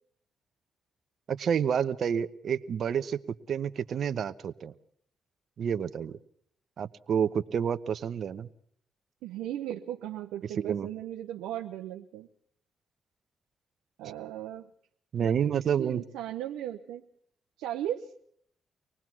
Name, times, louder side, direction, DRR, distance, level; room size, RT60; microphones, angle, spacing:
voice 1, 1.3-3.2 3.5-4.7 5.6-6.2 6.8-8.5 10.6-10.9 15.1-16.0, right 8 dB, 65° right, 12 dB, 1.0 m, -29 dB
voice 2, 9.2-12.3 14.0-14.7 15.2-17.0 17.6-18.1, right 12 dB, 90° right, 3 dB, 1.0 m, -37 dB
25.0 x 19.5 x 6.1 m, 0.66 s
supercardioid pair, 60°, 0 cm